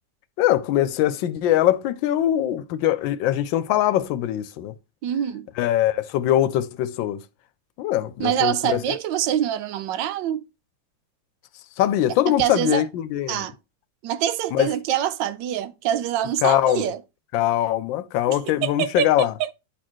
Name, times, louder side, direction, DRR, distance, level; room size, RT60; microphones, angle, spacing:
voice 1, 0.4-4.7 5.6-7.2 7.8-9.0 11.8-13.5 14.5-14.7 16.4-16.9 17.3-19.3, left 12 dB, 90° left, 1.3 m, -22 dB
voice 2, 5.0-5.5 8.2-10.4 12.3-12.8 13.3-13.5 14.0-17.0 18.3-19.5, right 10 dB, 80° right, 1.3 m, -25 dB
10.0 x 4.3 x 3.0 m
omnidirectional pair, 2.0 m